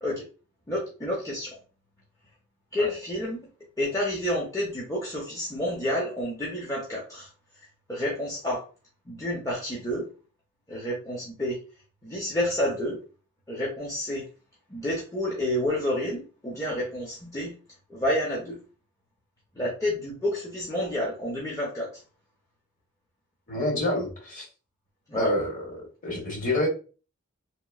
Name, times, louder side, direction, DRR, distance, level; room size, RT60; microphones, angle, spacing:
voice 1, 0.7-1.6 2.7-3.5 3.8-7.3 7.9-8.6 9.1-10.1 10.7-11.6 12.0-13.0 13.5-14.2 14.7-17.5 17.9-18.6 19.5-21.9 25.1-25.3, left 1 dB, 15° left, -5 dB, 0.5 m, -29 dB
voice 2, 23.5-24.5 25.1-26.7, left 1 dB, 35° left, -2 dB, 1.1 m, -28 dB
2.9 x 2.5 x 2.3 m, 0.36 s
head